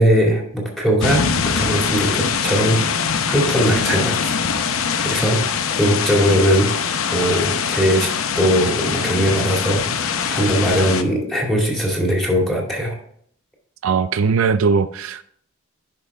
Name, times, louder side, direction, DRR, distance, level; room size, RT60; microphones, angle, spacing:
voice 1, 0.0-2.8 3.3-4.4 5.0-5.4 5.7-8.1 8.4-12.9, equal, ahead, -1 dB, 2.2 m, -20 dB
sound 1, 1.0-11.0, left 6 dB, 85° left, 0.7 m, -22 dB
voice 2, 13.8-15.2, right 5 dB, 90° right, 12 dB, 0.4 m, -19 dB
10.5 x 5.6 x 3.5 m, 0.65 s
head